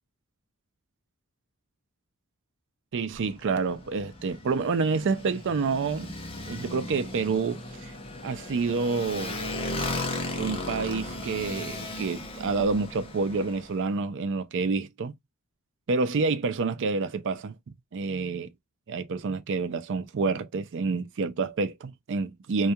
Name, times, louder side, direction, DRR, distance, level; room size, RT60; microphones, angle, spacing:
voice 1, 2.9-6.1 6.5-7.9 8.2-9.4 10.4-15.1 15.9-17.5 17.9-18.5 18.9-22.7, right 4 dB, 55° right, 0.4 m, -28 dB
Motorcycle, 3.1-13.8, left 2 dB, 25° left, 0.6 m, -36 dB
2.3 x 2.2 x 2.7 m
head